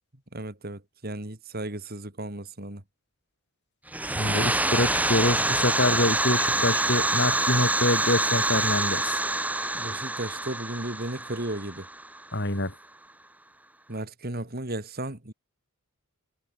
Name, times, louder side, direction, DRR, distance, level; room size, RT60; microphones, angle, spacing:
voice 1, 0.3-2.8 9.7-11.9 13.9-15.3, right 1 dB, 45° right, 3.0 m, -35 dB
sound 1, 3.9-12.4, right 2 dB, 5° right, 3.8 m, -26 dB
voice 2, 4.0-9.2 12.3-12.7, left 1 dB, 55° left, 4.9 m, -26 dB
head